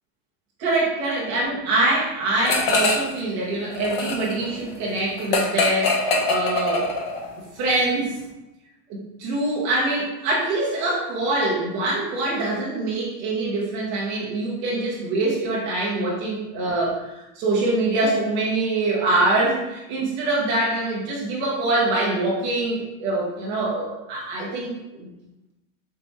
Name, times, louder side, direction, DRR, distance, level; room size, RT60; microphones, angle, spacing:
voice 1, 0.6-6.9 7.5-8.1 8.9-17.0 17.4-25.1, right 2 dB, 15° right, -5 dB, 0.5 m, -24 dB
sound 1, 2.4-3.2 3.5-7.3, left 3 dB, 40° left, 0.4 m, -23 dB
4.4 x 3.2 x 2.7 m, 0.96 s
supercardioid pair, 175°, 48 cm